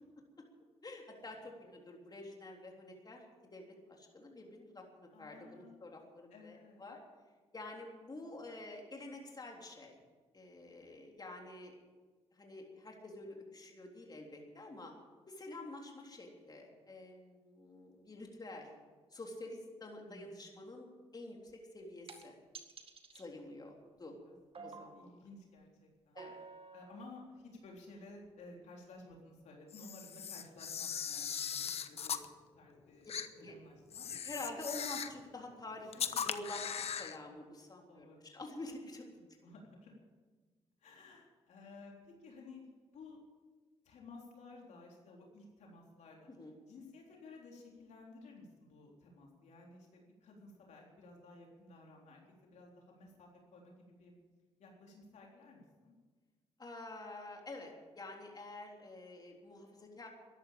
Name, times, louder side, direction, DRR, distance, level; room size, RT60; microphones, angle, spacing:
voice 1, 0.8-3.2 3.5-7.0 7.5-10.0 10.3-11.7 12.3-14.9 15.3-18.7 19.1-22.3 23.1-24.1 24.6-25.1 26.1-26.4 33.4-33.5 34.2-39.0 46.3-46.5 56.6-60.1, left 2 dB, 35° left, 0 dB, 3.5 m, -48 dB
voice 2, 5.1-5.8 6.3-7.0 20.0-20.5 24.0-26.2 26.7-32.2 32.5-34.1 35.9-36.1 37.2-37.4 37.9-38.3 39.4-39.9 40.8-42.6 42.9-43.2 43.8-46.3 46.7-54.1 54.6-55.9, left 2 dB, 75° left, -1 dB, 3.8 m, -55 dB
sound 1, 21.5-21.6 22.1-22.2 22.5-23.2 24.5-25.0 26.2-27.2 28.2-28.3 29.1-29.2, right 5 dB, 50° right, 2.0 m, -51 dB
Camera, 29.7-32.3 33.1-33.3 33.9-35.2 35.9-37.2, left 7 dB, 60° left, 1.0 m, -39 dB
13.5 x 11.0 x 8.8 m, 1.4 s
cardioid pair, 70°, 12 cm